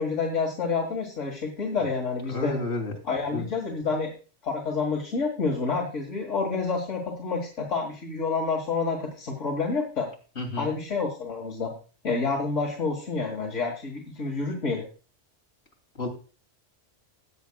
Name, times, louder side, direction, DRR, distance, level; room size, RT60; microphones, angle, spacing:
voice 1, 0.0-2.6 3.0-4.2 4.4-10.1 10.6-11.7 12.0-14.9, left 4 dB, 80° left, 0 dB, 2.1 m, -28 dB
voice 2, 2.3-2.9 3.3-3.4 10.4-10.7 16.0-16.1, left 2 dB, 60° left, -1 dB, 3.2 m, -30 dB
17.0 x 8.7 x 2.3 m, 0.37 s
omnidirectional pair, 1.2 m